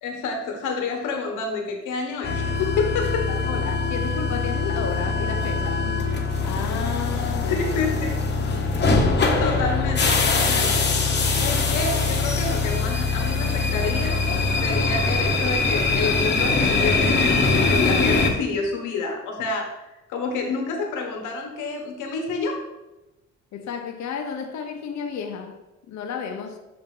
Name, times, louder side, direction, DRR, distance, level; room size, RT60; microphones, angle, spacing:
voice 1, 0.0-3.3 7.4-8.1 9.1-11.1 11.4-14.2 14.6-22.6, left 4 dB, 90° left, 1.4 m, -29 dB
sound 1, 2.2-18.3, left 3 dB, 35° left, 1.1 m, -22 dB
voice 2, 3.3-6.1 6.4-7.5 9.4-9.6 23.5-25.6 25.9-26.6, left 6 dB, 70° left, 0.9 m, -32 dB
6.9 x 2.9 x 5.4 m
cardioid pair, 90°, 30 cm